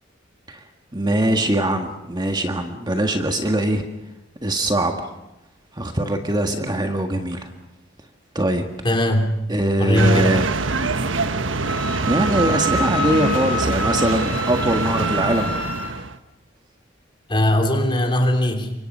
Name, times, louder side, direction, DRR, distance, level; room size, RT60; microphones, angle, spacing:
voice 1, 0.9-3.8 4.4-5.1 5.7-7.5 8.3-8.6 9.5-10.5 11.7-15.5, right 1 dB, 20° right, 5 dB, 1.6 m, -22 dB
voice 2, 8.8-9.3 9.8-10.3 17.3-18.7, left 1 dB, 25° left, 3 dB, 3.2 m, -19 dB
sound 1, 9.9-16.2, right 3 dB, 80° right, 1.3 m, -24 dB
Wind instrument woodwind instrument, 11.6-15.9, left 1 dB, 10° left, 3.6 m, -28 dB
28.0 x 25.0 x 5.5 m, 0.95 s
head